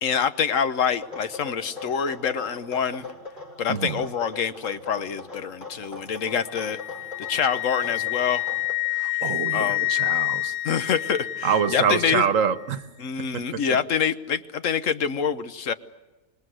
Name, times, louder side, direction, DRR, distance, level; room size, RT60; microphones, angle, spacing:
voice 1, 0.0-3.1 3.6-6.8 7.3-8.4 9.5-9.8 10.6-12.2 13.0-15.7, left 7 dB, 65° left, 11 dB, 1.3 m, -26 dB
sound 1, 0.9-8.7, left 3 dB, 50° left, 5.3 m, -41 dB
Wind instrument woodwind instrument, 6.3-12.2, left 19 dB, 85° left, 1.4 m, -28 dB
voice 2, 8.9-10.5 11.4-12.8 13.3-13.6, right 7 dB, 70° right, 13 dB, 1.3 m, -25 dB
26.0 x 21.0 x 7.9 m, 1.2 s
omnidirectional pair, 1.4 m